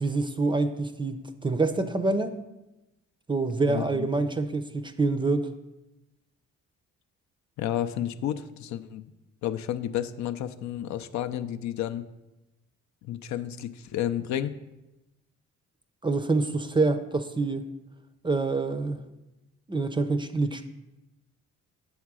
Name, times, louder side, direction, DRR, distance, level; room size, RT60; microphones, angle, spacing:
voice 1, 0.0-2.4 3.3-5.5 16.0-17.6 18.2-19.0 19.7-20.7, right 3 dB, 15° right, 9 dB, 0.5 m, -26 dB
voice 2, 3.7-4.1 7.6-9.0 9.4-12.0 13.0-14.5, left 11 dB, 70° left, 9 dB, 0.5 m, -31 dB
7.3 x 3.6 x 6.1 m, 0.98 s
cardioid pair, 90°, 30 cm